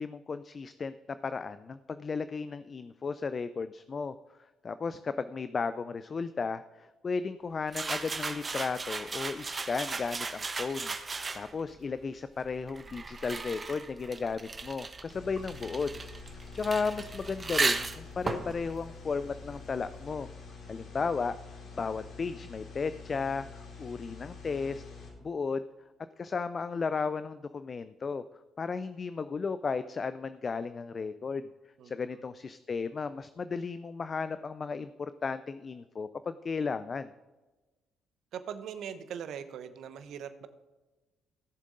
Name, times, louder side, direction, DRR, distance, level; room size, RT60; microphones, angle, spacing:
voice 1, 0.0-4.4 4.6-10.9 11.3-15.9 16.5-20.3 20.7-21.3 21.8-23.4 23.8-24.8 25.2-25.6 26.2-28.2 28.6-31.5 31.8-37.1, left 5 dB, 40° left, 13 dB, 0.4 m, -34 dB
sound 1, 7.7-11.7 12.5-19.9, right 4 dB, 35° right, 1.1 m, -36 dB
sound 2, 15.1-25.1, left 4 dB, 65° left, 3.2 m, -47 dB
voice 2, 38.3-40.5, right 8 dB, 65° right, 11 dB, 0.9 m, -41 dB
17.0 x 7.3 x 3.9 m, 1.2 s
hypercardioid pair, 50°, 0 cm